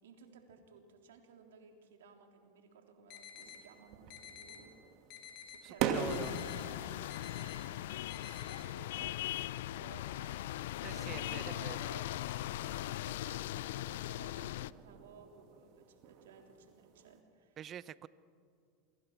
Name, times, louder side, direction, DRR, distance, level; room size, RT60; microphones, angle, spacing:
voice 1, 0.0-4.7 5.5-17.6, right 6 dB, 75° right, 4 dB, 3.5 m, -57 dB
sound 1, 3.1-3.6 4.1-4.6 5.1-5.6 6.1-6.6 7.1-7.6 8.1-8.6, left 10 dB, 55° left, 4.4 m, -50 dB
sound 2, 3.3-17.2, right 7 dB, 55° right, 2.5 m, -44 dB
voice 2, 5.8-6.3 10.8-11.9 17.6-18.1, right 9 dB, 35° right, 17 dB, 0.8 m, -45 dB
sound 3, 5.9-14.7, left 14 dB, 70° left, 0.5 m, -39 dB
28.0 x 23.5 x 6.0 m, 2.3 s
hypercardioid pair, 90°, 0 cm